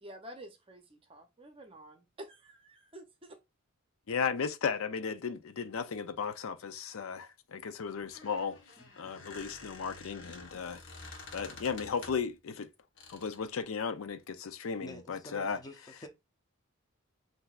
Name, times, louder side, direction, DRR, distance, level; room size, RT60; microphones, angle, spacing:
voice 1, 0.0-3.4, right 1 dB, 25° right, 0.7 m, -50 dB
voice 2, 4.1-8.6 9.0-10.8 11.1-12.7 13.1-15.6, left 6 dB, 75° left, 0.5 m, -35 dB
Squeak, 8.0-12.4 13.0-13.5, left 3 dB, 55° left, 1.2 m, -49 dB
voice 3, 14.8-16.1, left 1 dB, 20° left, 0.7 m, -48 dB
7.8 x 2.7 x 2.4 m
head